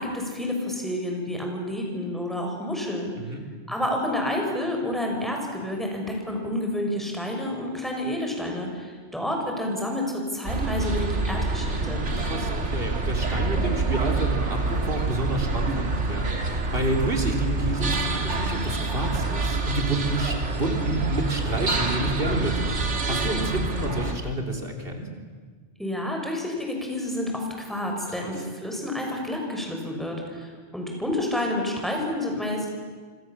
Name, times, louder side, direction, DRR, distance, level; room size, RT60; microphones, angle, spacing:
voice 1, 0.0-3.1 3.7-12.0 25.8-32.7, left 1 dB, ahead, 1 dB, 6.1 m, -29 dB
sound 1, 10.4-24.1, right 3 dB, 80° right, 2.5 m, -27 dB
voice 2, 12.2-25.1 28.1-28.3, right 1 dB, 55° right, 2 dB, 3.9 m, -29 dB
27.0 x 26.0 x 7.5 m, 1.5 s
omnidirectional pair, 1.2 m